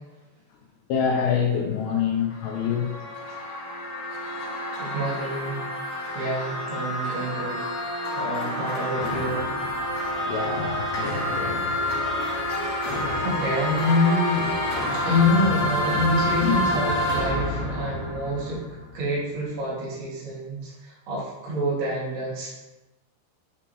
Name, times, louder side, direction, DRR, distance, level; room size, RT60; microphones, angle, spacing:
voice 1, 0.9-2.9 8.4-8.6 10.2-11.7 12.2-12.4 16.4-16.5, left 7 dB, 85° left, 1 dB, 2.8 m, -26 dB
sound 1, 2.1-19.0, left 1 dB, 60° left, 2.7 m, -28 dB
voice 2, 4.8-5.6 6.1-7.7 8.2-9.4 12.6-12.8 13.2-14.5 15.0-18.6 18.9-22.5, left 1 dB, 80° right, -7 dB, 4.1 m, -27 dB
9.7 x 3.6 x 2.8 m, 1.0 s
omnidirectional pair, 5.1 m